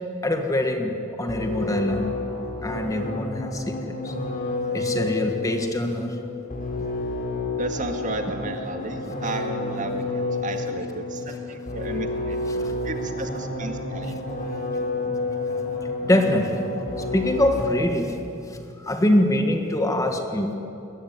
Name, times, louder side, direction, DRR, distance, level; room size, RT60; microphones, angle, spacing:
voice 1, 0.2-2.1 2.6-4.1 4.7-6.2 12.5-12.7 16.0-16.7 17.1-18.2 18.8-20.5, left 1 dB, 15° left, 4 dB, 1.5 m, -24 dB
sound 1, 1.3-17.9, left 2 dB, 40° left, 3.9 m, -30 dB
voice 2, 7.6-12.4 12.8-14.2, right 2 dB, 35° right, 5 dB, 2.0 m, -33 dB
21.5 x 20.5 x 9.5 m, 2.9 s
head